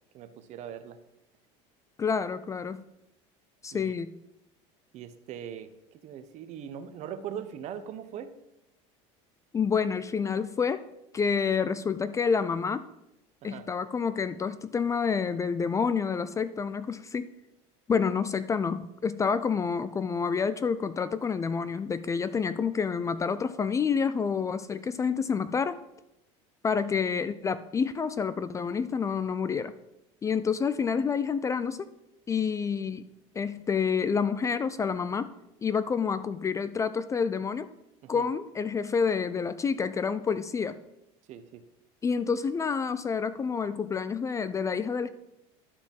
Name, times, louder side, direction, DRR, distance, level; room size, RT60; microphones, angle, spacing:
voice 1, 0.1-1.0 3.7-3.9 4.9-8.3 13.4-13.6 38.0-38.3 41.3-41.6, right 9 dB, 50° right, 10 dB, 0.9 m, -41 dB
voice 2, 2.0-2.8 3.6-4.1 9.5-10.8 11.1-12.9 13.4-17.3 17.9-25.8 26.6-29.7 30.2-31.9 32.3-33.1 33.4-35.3 35.6-37.7 38.1-40.8 42.0-45.1, left 6 dB, 20° left, 14 dB, 0.4 m, -28 dB
11.5 x 4.9 x 5.4 m, 0.87 s
supercardioid pair, 125°, 15 cm